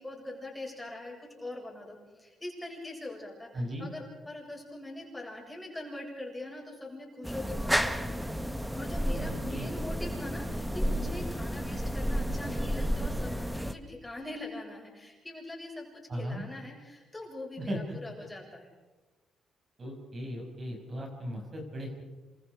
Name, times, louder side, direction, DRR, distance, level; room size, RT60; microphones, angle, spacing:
voice 1, 0.0-8.0 8.7-15.9 16.1-18.7, left 1 dB, 10° left, -1 dB, 7.7 m, -42 dB
voice 2, 3.5-3.9 9.3-9.7 16.1-16.4 17.6-18.0 19.8-22.0, equal, 40° right, 1 dB, 6.6 m, -37 dB
sound 1, 7.2-13.7, equal, 5° right, 1.3 m, -31 dB
28.0 x 24.5 x 5.1 m, 1.2 s
cardioid pair, 90°, 0 cm